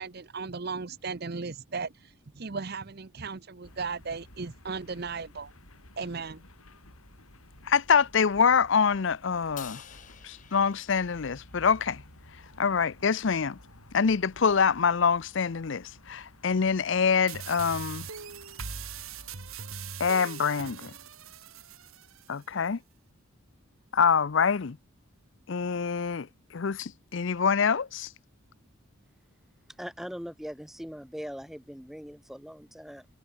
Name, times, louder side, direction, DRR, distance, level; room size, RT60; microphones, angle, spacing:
voice 1, 0.0-5.5 6.0-6.4, right 4 dB, 45° right, 0.7 m, -36 dB
sound 1, 3.6-19.4, left 1 dB, 85° left, 7.6 m, -54 dB
voice 2, 7.6-9.8 10.2-12.0 12.6-13.6 13.9-18.1 20.0-20.9 22.3-22.8 23.9-24.8 25.5-28.1, left 6 dB, 60° left, 0.5 m, -25 dB
Crash cymbal, 9.6-11.9, left 10 dB, 35° left, 1.1 m, -49 dB
sound 2, 17.3-22.3, right 6 dB, 75° right, 2.2 m, -41 dB
voice 3, 29.8-33.1, equal, ahead, 1.0 m, -41 dB
head